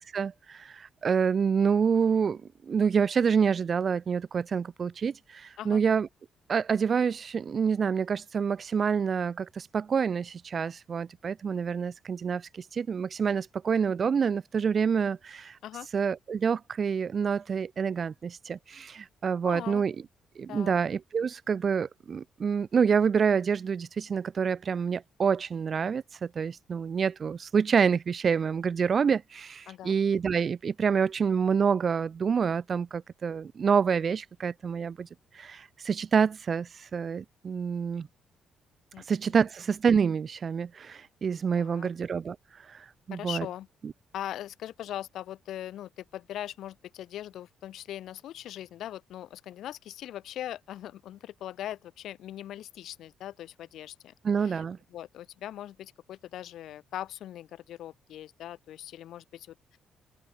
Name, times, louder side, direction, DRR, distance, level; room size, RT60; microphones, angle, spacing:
voice 1, 0.0-2.4 2.7-6.1 6.5-15.6 15.9-19.9 20.4-38.1 39.0-43.5 54.2-54.8, right 6 dB, 45° right, 2.6 m, -27 dB
voice 2, 19.4-19.8 20.5-20.7 29.7-30.0 38.9-39.4 41.6-41.9 43.1-43.7 44.1-54.6 54.9-59.8, left 12 dB, 75° left, 6.0 m, -40 dB
open air
cardioid pair, 90°, 0 cm